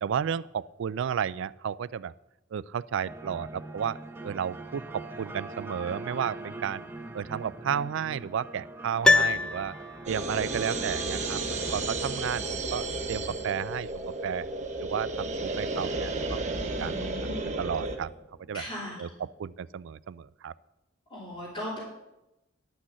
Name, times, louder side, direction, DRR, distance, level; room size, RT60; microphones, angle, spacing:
voice 1, 0.0-2.1 2.5-6.8 7.1-9.7 10.1-14.5 14.8-17.1 17.6-18.1 18.5-18.7 19.0-20.5, right 8 dB, 65° right, 18 dB, 0.3 m, -33 dB
sound 1, 3.0-19.4, right 2 dB, 10° right, 0.8 m, -44 dB
Piano, 9.0-10.3 10.6-10.7, left 3 dB, 5° left, 0.4 m, -24 dB
sound 2, 10.1-18.0, right 2 dB, 35° right, 1.2 m, -33 dB
voice 2, 16.7-17.5 18.5-19.0 21.1-21.8, left 1 dB, 30° left, -8 dB, 3.7 m, -38 dB
11.5 x 6.2 x 7.5 m, 0.92 s
head